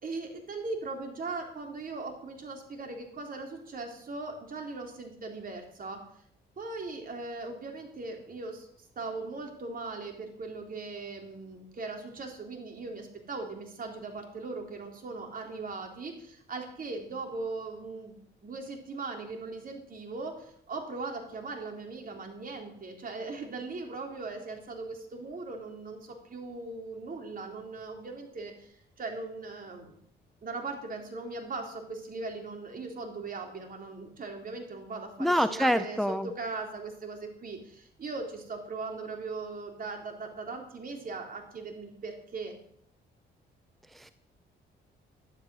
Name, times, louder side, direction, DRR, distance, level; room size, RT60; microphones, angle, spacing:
voice 1, 0.0-6.0 6.6-8.7 9.0-18.2 18.4-30.0 30.4-42.6, right 3 dB, 45° right, 2 dB, 3.6 m, -39 dB
voice 2, 35.2-36.3 44.0-44.1, equal, ahead, 11 dB, 0.6 m, -26 dB
12.0 x 11.5 x 6.3 m, 0.68 s
cardioid pair, 90°, 20 cm